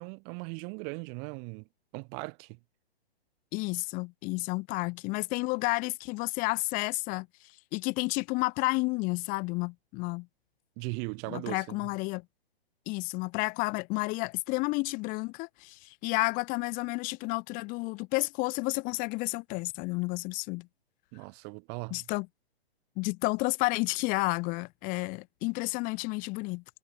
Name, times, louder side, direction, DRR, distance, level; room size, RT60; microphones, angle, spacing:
voice 1, 0.0-1.7 1.9-2.6 10.8-11.9 21.1-22.1, right 40 dB or more, 30° right, 2.4 m, -39 dB
voice 2, 3.5-7.3 7.7-10.3 11.3-12.2 12.9-20.7 21.9-22.3 23.0-26.6, left 26 dB, 25° left, 1.3 m, -31 dB
hypercardioid pair, 140°, 31 cm